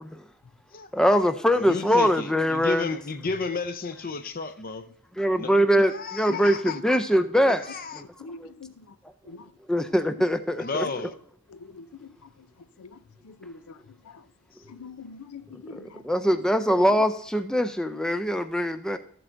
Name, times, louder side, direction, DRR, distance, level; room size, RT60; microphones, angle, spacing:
voice 1, 0.9-2.8 5.2-7.6 7.9-8.0 8.4-8.5 9.7-10.9 15.7-19.0, equal, 5° left, 0.3 m, -23 dB
voice 2, 1.5-4.8 5.3-5.5 5.9-6.8 7.7-8.0 10.6-11.1, left 4 dB, 40° left, 0.6 m, -32 dB
voice 3, 8.2-8.7 9.3-9.5 11.5-12.1 12.8-13.0 13.2-13.8 14.1-14.2 14.7-16.0, left 4 dB, 85° left, 0.5 m, -43 dB
13.5 x 7.6 x 2.5 m
head